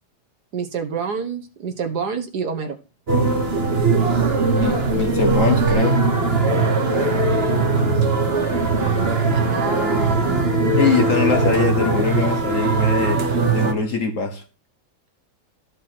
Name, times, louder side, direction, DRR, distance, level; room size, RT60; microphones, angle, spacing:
voice 1, 0.5-2.8 8.8-10.9, right 5 dB, 60° right, 1.7 m, -28 dB
sound 1, 3.1-13.7, right 3 dB, 35° right, 1.5 m, -20 dB
voice 2, 4.5-6.0 10.8-13.2 13.5-14.4, left 4 dB, 45° left, 1.3 m, -22 dB
12.5 x 5.1 x 6.0 m
omnidirectional pair, 2.1 m